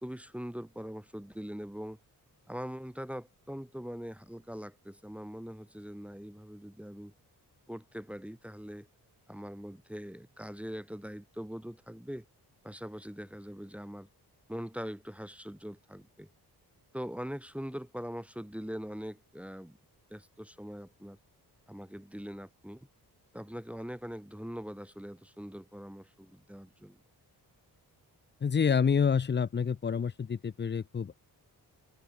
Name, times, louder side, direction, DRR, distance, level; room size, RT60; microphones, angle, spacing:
voice 1, 0.0-2.0 2.5-7.1 7.7-8.9 9.3-12.3 12.6-14.1 14.5-16.3 16.9-19.8 20.1-21.2 21.7-22.9 23.3-27.0, equal, 5° right, 2.2 m, -42 dB
voice 2, 28.4-31.1, left 6 dB, 30° left, 0.5 m, -28 dB
wide cardioid pair, 150°, 39 cm